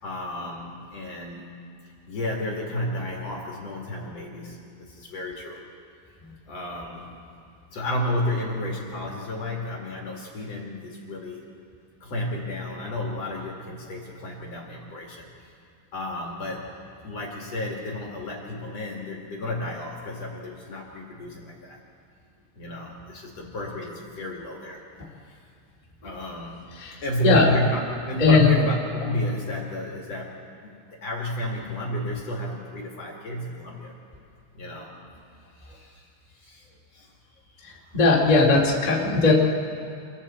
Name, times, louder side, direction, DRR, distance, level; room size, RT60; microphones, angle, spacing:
voice 1, 0.0-1.6 2.1-5.6 6.5-7.2 7.7-11.4 12.0-15.3 15.9-16.7 17.0-21.8 22.6-24.8 25.2-25.4 26.0-26.7 27.0-30.7 31.0-33.9 34.5-35.0 35.5-36.1 36.3-36.7 36.9-37.1 37.6-37.7, left 1 dB, 50° left, -2 dB, 2.2 m, -32 dB
voice 2, 37.9-39.3, left 3 dB, 30° left, -4 dB, 0.7 m, -18 dB
28.5 x 22.5 x 4.4 m, 2.5 s
omnidirectional pair, 5.9 m